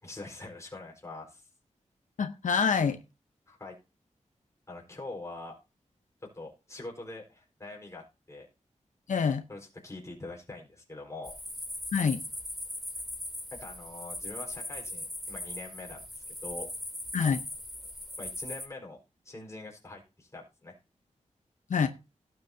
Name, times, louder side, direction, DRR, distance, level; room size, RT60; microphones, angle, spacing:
voice 1, 0.0-1.4 3.5-3.7 4.7-5.5 6.3-8.5 9.5-11.3 13.5-16.7 18.2-19.0 19.2-20.8, left 2 dB, 25° left, 4.5 m, -44 dB
voice 2, 2.2-3.0 9.1-9.4 11.9-12.2 17.1-17.4 21.7-21.9, left 6 dB, 80° left, 0.8 m, -26 dB
sound 1, 11.2-18.7, left 1 dB, ahead, 3.2 m, -39 dB
17.0 x 7.9 x 2.8 m
wide cardioid pair, 135°, 13 cm